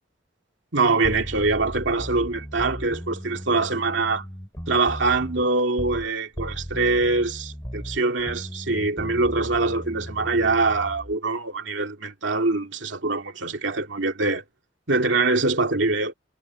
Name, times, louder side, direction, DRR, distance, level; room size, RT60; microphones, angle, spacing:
voice 1, 0.7-4.3 4.7-14.4 14.9-16.1, right 3 dB, 80° right, 2.3 m, -24 dB
sound 1, 1.0-6.1 6.4-11.1, equal, 15° left, 6.0 m, -36 dB
head